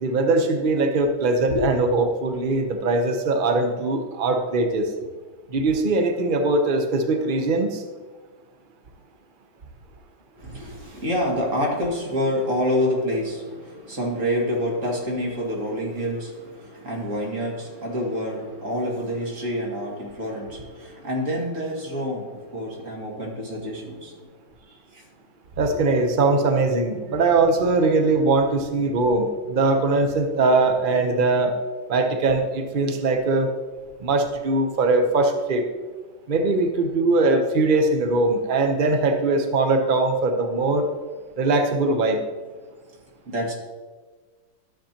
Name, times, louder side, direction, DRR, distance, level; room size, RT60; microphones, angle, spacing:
voice 1, 0.0-4.9 5.5-7.8 25.6-31.5 31.9-33.5 34.0-35.6 36.3-40.8 41.4-42.2, right 3 dB, 85° right, 5 dB, 0.4 m, -21 dB
voice 2, 10.4-24.1 24.9-25.0 43.3-43.5, equal, 40° right, -2 dB, 2.3 m, -27 dB
13.0 x 8.0 x 2.9 m, 1.4 s
omnidirectional pair, 2.2 m